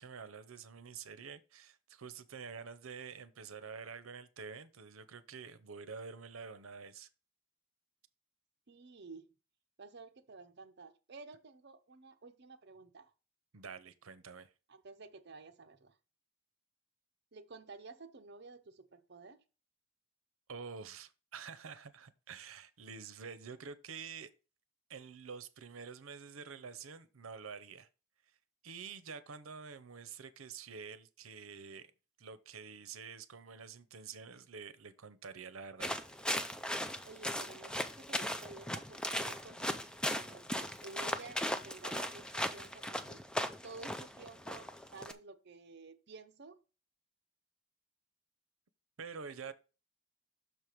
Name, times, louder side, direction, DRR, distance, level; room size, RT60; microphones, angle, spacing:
voice 1, 0.0-7.1 13.5-14.5 20.5-24.3 24.9-27.9 28.6-31.9 32.2-35.9 49.0-49.5, right 5 dB, 90° right, 0.7 m, -48 dB
voice 2, 8.7-9.3 9.8-13.1 14.7-16.0 17.3-19.4 37.1-39.7 40.2-43.2 43.6-46.6 49.4-49.5, right 3 dB, 55° right, 0.8 m, -52 dB
sound 1, 35.8-45.1, equal, 5° left, 0.4 m, -38 dB
6.4 x 4.6 x 5.0 m
head